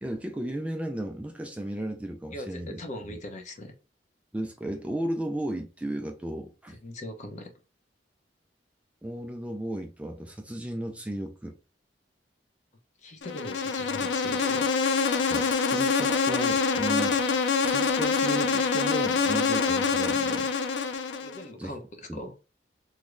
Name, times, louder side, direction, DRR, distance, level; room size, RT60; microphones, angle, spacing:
voice 1, 0.0-2.8 3.1-3.2 4.3-6.8 9.0-11.6 15.3-17.2 17.6-20.5 20.8-21.1 21.6-21.7 22.1-22.2, right 1 dB, 10° right, 0.3 m, -34 dB
voice 2, 2.3-3.7 6.8-7.5 13.0-14.7 21.2-22.3, left 1 dB, 45° left, 0.7 m, -40 dB
Insect, 13.2-21.4, left 5 dB, 80° left, 0.4 m, -25 dB
3.1 x 2.1 x 3.6 m
head